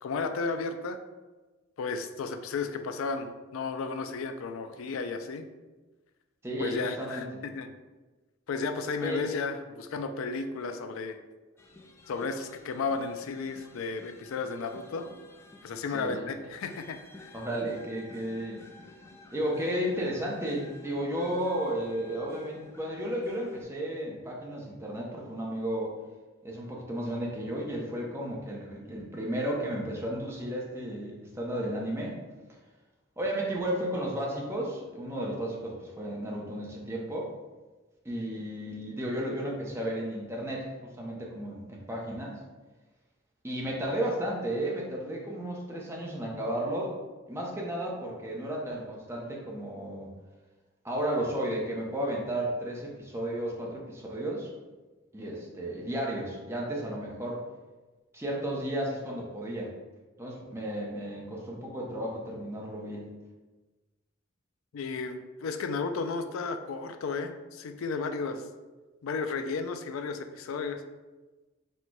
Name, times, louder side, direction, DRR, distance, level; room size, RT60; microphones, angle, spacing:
voice 1, 0.0-1.0 1.8-5.5 6.6-7.7 8.5-11.2 12.1-15.1 15.6-17.4 64.7-68.5 69.0-70.8, left 4 dB, 85° left, 8 dB, 0.4 m, -33 dB
voice 2, 6.4-7.4 9.0-9.2 15.9-16.2 17.3-18.6 19.3-25.9 26.4-32.2 33.2-37.3 38.0-40.7 41.0-42.4 43.4-47.0 47.3-50.1 50.8-54.5 55.1-57.4 58.1-59.7 60.2-63.1, right 1 dB, 10° right, -3 dB, 0.7 m, -33 dB
sound 1, 11.6-23.6, left 2 dB, 15° left, 0.3 m, -52 dB
4.3 x 2.2 x 4.5 m, 1.2 s
head